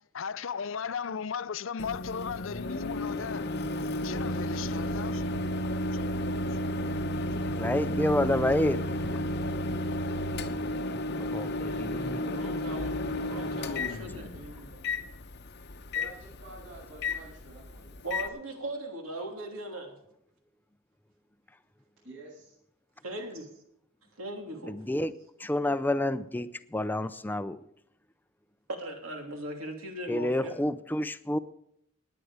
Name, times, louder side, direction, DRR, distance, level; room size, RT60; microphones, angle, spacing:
voice 1, 0.1-3.5 4.0-5.2 5.7-5.8 7.2-7.3, left 6 dB, 65° left, 0.5 m, -36 dB
Microwave oven, 1.8-18.3, left 1 dB, 50° left, 0.8 m, -32 dB
voice 2, 7.5-9.1 11.2-12.2 24.7-25.1 25.4-27.6 30.1-31.4, left 1 dB, 10° left, 0.4 m, -29 dB
voice 3, 11.7-15.2 18.0-20.0 23.0-23.5 24.2-24.8 28.7-30.6, right 1 dB, 85° right, 2.9 m, -39 dB
voice 4, 13.8-14.4 15.9-18.2 22.0-22.6, right 2 dB, 65° right, 7.3 m, -50 dB
17.0 x 9.9 x 4.9 m
head